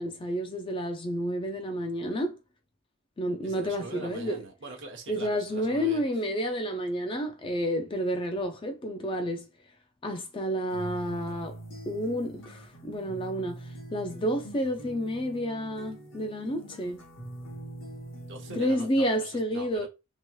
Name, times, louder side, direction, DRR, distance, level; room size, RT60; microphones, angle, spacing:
voice 1, 0.0-2.4 3.2-4.4 5.1-9.5 10.0-11.6 11.9-17.0 18.5-19.9, equal, 25° left, 0.3 m, -30 dB
voice 2, 3.4-6.0 18.2-19.9, right 3 dB, 55° right, 1.0 m, -43 dB
sound 1, 10.7-18.7, right 1 dB, 65° left, 1.0 m, -44 dB
3.0 x 2.8 x 2.2 m
head